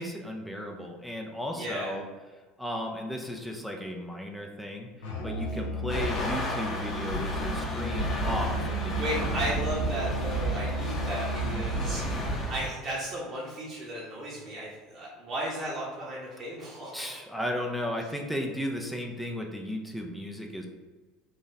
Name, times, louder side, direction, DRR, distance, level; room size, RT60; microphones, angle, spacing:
voice 1, 0.0-2.0 2.6-9.5 11.4-11.8 16.9-20.7, equal, ahead, 1 dB, 0.4 m, -35 dB
voice 2, 1.5-1.9 5.4-5.6 8.9-12.0 12.5-17.2, equal, 35° right, -6 dB, 0.9 m, -35 dB
Musical instrument, 5.0-12.0, right 1 dB, 70° left, 0.8 m, -34 dB
sound 1, 5.9-12.7, equal, 30° left, 1.0 m, -32 dB
3.9 x 3.0 x 2.7 m, 1.3 s
figure-of-eight pair, 70°, 0 cm